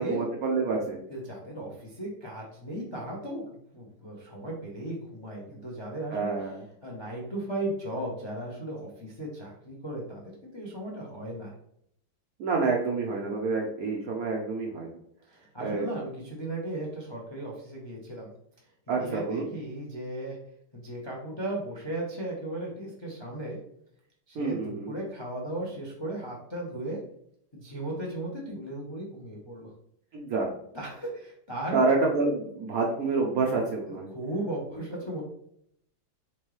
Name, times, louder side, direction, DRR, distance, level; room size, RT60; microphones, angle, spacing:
voice 1, 0.0-1.0 6.1-6.6 12.4-15.0 15.6-15.9 18.9-19.5 24.3-25.0 30.1-30.5 31.7-34.1, right 3 dB, 65° right, -1 dB, 0.9 m, -28 dB
voice 2, 1.1-6.3 6.8-10.2 10.5-11.5 15.3-18.3 19.0-20.4 20.7-23.6 24.3-27.0 27.5-29.7 30.7-31.8 34.1-35.2, right 1 dB, 35° left, -2 dB, 0.4 m, -36 dB
4.5 x 3.6 x 3.2 m, 0.70 s
omnidirectional pair, 2.1 m